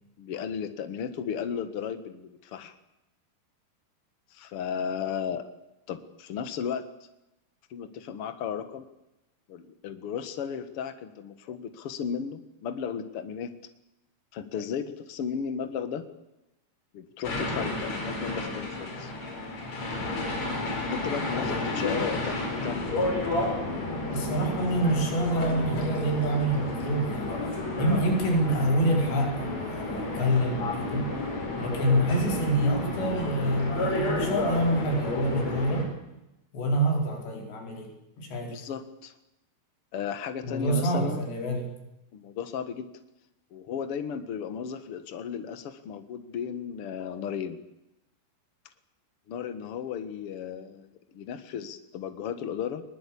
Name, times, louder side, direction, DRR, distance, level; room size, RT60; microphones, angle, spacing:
voice 1, 0.2-2.7 4.3-5.5 5.9-6.8 7.7-8.8 9.5-13.5 14.3-16.0 16.9-19.1 20.9-23.0 38.5-39.1 39.9-41.2 42.1-42.9 43.5-47.6 49.3-52.8, left 7 dB, 60° left, 10 dB, 1.4 m, -35 dB
sound 1, 17.2-35.8, left 2 dB, 40° left, 5.8 m, -31 dB
voice 2, 21.3-22.1 24.1-27.4 27.8-31.1 31.6-35.9 36.5-37.9 38.2-38.5 40.4-41.7, right 1 dB, 85° left, 2 dB, 6.5 m, -27 dB
21.5 x 20.0 x 8.6 m, 0.92 s
omnidirectional pair, 4.9 m